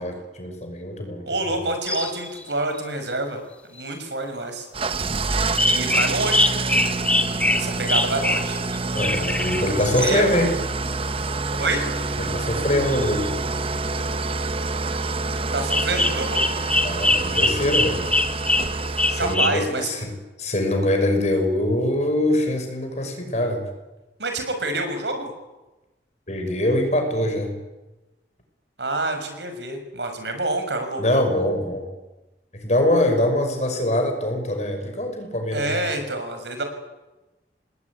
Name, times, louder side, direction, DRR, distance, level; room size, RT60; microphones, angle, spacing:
voice 1, 0.0-1.6 5.0-5.1 8.9-10.5 12.2-13.3 16.8-18.0 19.1-23.6 26.3-27.5 31.0-31.9 32.5-35.8, left 1 dB, 40° left, 5 dB, 5.9 m, -23 dB
voice 2, 1.3-3.4 3.7-4.7 5.6-6.6 7.5-8.6 9.9-10.2 11.6-11.9 15.5-16.5 19.2-20.0 24.2-25.3 28.8-31.0 35.5-36.6, right 2 dB, 80° right, 6 dB, 5.8 m, -27 dB
sound 1, 1.9-2.5 3.8-3.9 5.6-10.2 12.9-13.2 15.7-19.6, left 2 dB, 10° left, 1.5 m, -23 dB
Engine starting / Idling, 4.7-19.4, right 3 dB, 35° right, 0.9 m, -27 dB
26.5 x 20.0 x 9.7 m, 1.1 s
head